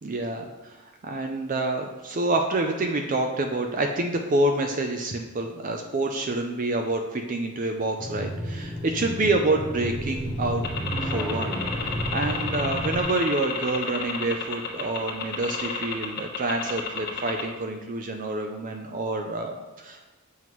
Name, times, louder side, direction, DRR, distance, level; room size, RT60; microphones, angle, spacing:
voice 1, 0.0-0.7 1.0-10.6 11.0-11.6 12.1-20.1, right 2 dB, 40° right, 4 dB, 0.5 m, -27 dB
sound 1, 8.0-13.0, equal, ahead, 0.8 m, -31 dB
sound 2, 10.6-17.4, left 6 dB, 45° left, 1.2 m, -31 dB
7.7 x 5.5 x 3.1 m, 1.2 s
head